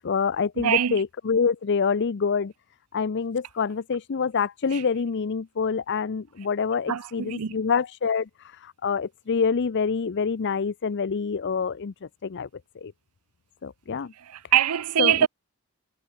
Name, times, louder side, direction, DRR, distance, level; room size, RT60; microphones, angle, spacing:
voice 1, 0.0-2.5 2.9-8.3 8.6-11.9 12.2-12.5 12.8-12.9 13.6-14.1 15.0-15.3, left 5 dB, 50° left, 0.5 m, -26 dB
voice 2, 0.6-1.0 4.7-4.8 6.9-7.5 14.2-15.3, right 10 dB, 90° right, 0.6 m, -23 dB
head